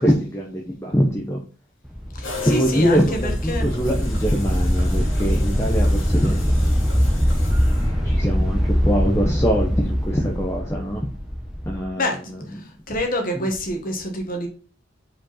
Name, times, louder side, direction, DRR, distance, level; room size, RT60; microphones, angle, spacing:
voice 1, 0.0-1.4 2.4-6.5 8.0-11.1 11.7-12.6 13.3-13.5, equal, 15° left, -1 dB, 0.8 m, -23 dB
sound 1, 1.8-11.8, equal, 5° right, 1.2 m, -22 dB
voice 2, 2.1-3.7 11.9-12.3 12.9-14.5, left 1 dB, 45° left, 3 dB, 1.4 m, -26 dB
sound 2, 2.2-8.3, left 3 dB, 75° left, 2.7 m, -37 dB
5.1 x 5.1 x 4.2 m, 0.38 s
head